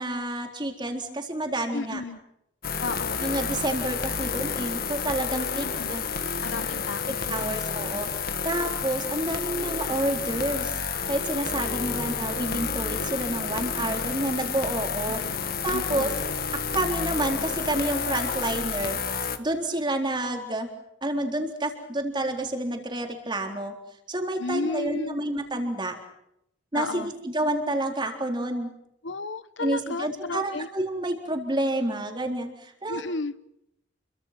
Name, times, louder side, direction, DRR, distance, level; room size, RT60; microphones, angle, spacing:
voice 1, 0.0-2.0 3.2-6.0 7.1-10.8 11.1-15.2 15.6-16.1 16.7-19.0 19.4-20.7 21.0-23.7 24.1-25.9 26.7-28.7 29.6-33.1, right 1 dB, 25° right, 3 dB, 3.9 m, -29 dB
voice 2, 1.7-2.2 2.8-3.2 5.6-5.9 6.4-7.6 12.0-12.2 15.2-15.4 15.7-16.1 24.4-25.2 26.7-27.1 29.0-30.7 32.9-33.3, left 3 dB, 75° left, 14 dB, 1.0 m, -33 dB
sound 1, 2.6-19.4, left 6 dB, 50° left, 1.7 m, -30 dB
30.0 x 23.5 x 6.0 m, 0.80 s
head